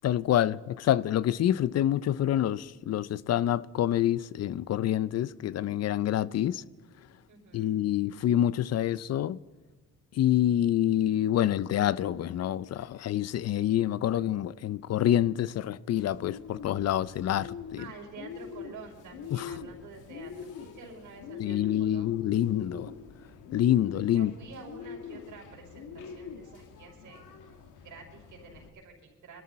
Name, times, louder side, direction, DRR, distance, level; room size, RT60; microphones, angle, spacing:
voice 1, 0.0-6.6 7.5-9.4 10.2-17.5 19.3-19.5 21.4-22.9 23.5-24.3, left 11 dB, 55° left, 0.5 m, -27 dB
voice 2, 7.3-7.8 17.8-22.2 24.1-27.3 27.8-29.4, right 5 dB, 80° right, 5.1 m, -49 dB
Bird, 16.0-28.7, left 6 dB, 85° left, 1.6 m, -44 dB
22.5 x 13.5 x 4.2 m
cardioid pair, 90°, 30 cm